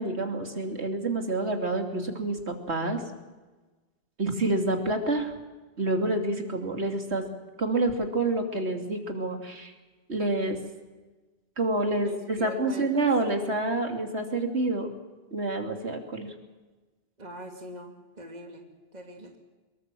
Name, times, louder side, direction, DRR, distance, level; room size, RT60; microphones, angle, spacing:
voice 1, 0.0-3.0 4.2-5.3 5.8-7.2 7.6-9.7 10.1-10.6 11.6-14.9 15.3-16.3, right 2 dB, 80° right, 4 dB, 3.1 m, -28 dB
voice 2, 11.8-13.1 17.2-18.6 18.9-19.4, right 1 dB, 40° right, 2 dB, 2.6 m, -42 dB
24.0 x 22.0 x 7.6 m, 1.2 s
omnidirectional pair, 1.1 m